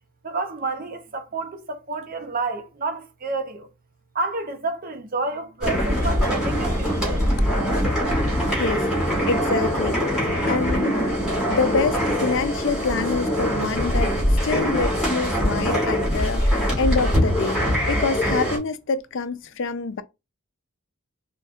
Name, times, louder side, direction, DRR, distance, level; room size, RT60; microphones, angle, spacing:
voice 1, 0.2-3.7 4.1-7.3, right 3 dB, 40° right, 0.8 m, -29 dB
sound 1, 5.6-18.6, equal, 5° right, 2.3 m, -23 dB
voice 2, 8.6-10.1 10.4-11.0 11.5-20.0, left 4 dB, 60° left, 0.5 m, -26 dB
4.1 x 3.5 x 2.4 m
head